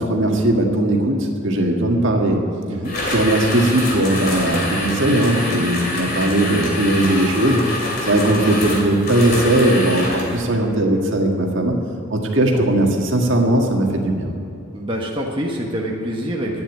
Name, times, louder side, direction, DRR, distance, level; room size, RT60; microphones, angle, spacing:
voice 1, 0.0-2.4 3.0-7.6 8.0-11.8 12.1-14.3, right 1 dB, 60° right, 1 dB, 1.8 m, -18 dB
sound 1, 2.8-10.4, left 1 dB, 45° left, 2.8 m, -26 dB
voice 2, 14.7-16.6, equal, 25° right, -2 dB, 1.2 m, -26 dB
11.5 x 9.1 x 9.4 m, 2.6 s
head